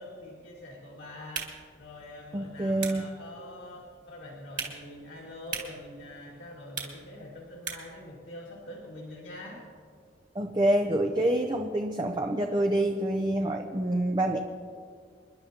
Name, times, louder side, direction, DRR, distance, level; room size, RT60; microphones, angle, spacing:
voice 1, 0.0-9.7, left 1 dB, 70° left, -5 dB, 2.2 m, -45 dB
sound 1, 1.2-8.0, right 6 dB, 45° right, 2.2 m, -42 dB
voice 2, 2.3-3.1 10.3-14.4, right 1 dB, 25° right, 3 dB, 0.6 m, -27 dB
27.5 x 11.0 x 2.9 m, 2.1 s
head